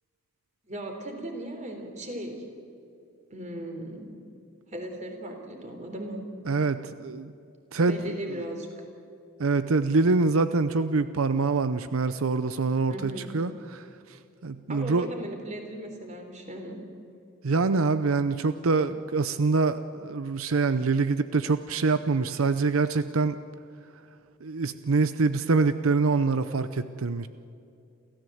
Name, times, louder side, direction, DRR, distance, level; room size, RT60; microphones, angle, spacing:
voice 1, 0.7-2.4 3.3-4.1 4.7-6.2 7.8-8.7 12.9-13.3 14.7-16.8, right 1 dB, 35° right, 3 dB, 3.6 m, -37 dB
voice 2, 6.5-7.3 7.7-8.0 9.4-13.8 14.4-15.1 17.4-23.4 24.4-27.3, right 4 dB, 85° right, 12 dB, 0.7 m, -25 dB
29.0 x 14.0 x 7.9 m, 2.6 s
head